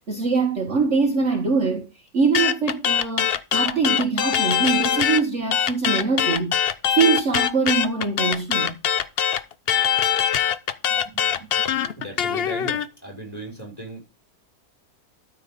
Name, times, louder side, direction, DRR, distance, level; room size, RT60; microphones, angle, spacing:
voice 1, 0.1-1.8 2.1-6.7 6.9-8.7, right 4 dB, 45° right, 1.7 m, -23 dB
sound 1, 2.3-5.2 5.5-12.8, left 9 dB, 85° left, 0.5 m, -22 dB
voice 2, 10.9-14.0, right 1 dB, 10° left, 5.6 m, -38 dB
12.5 x 4.5 x 5.3 m
omnidirectional pair, 1.9 m